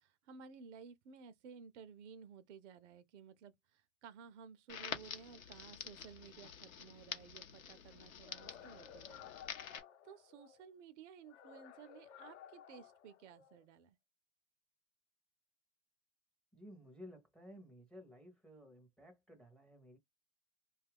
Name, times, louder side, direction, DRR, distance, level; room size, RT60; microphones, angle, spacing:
voice 1, 0.0-9.3 10.0-14.0, right 6 dB, 60° right, 0.6 m, -56 dB
Crackle, 4.7-9.8, left 8 dB, 90° left, 0.8 m, -48 dB
sound 1, 8.2-10.6 11.2-13.7, left 9 dB, 60° left, 0.8 m, -56 dB
voice 2, 16.5-20.0, equal, ahead, 0.6 m, -56 dB
2.6 x 2.3 x 3.3 m
hypercardioid pair, 110°, 40 cm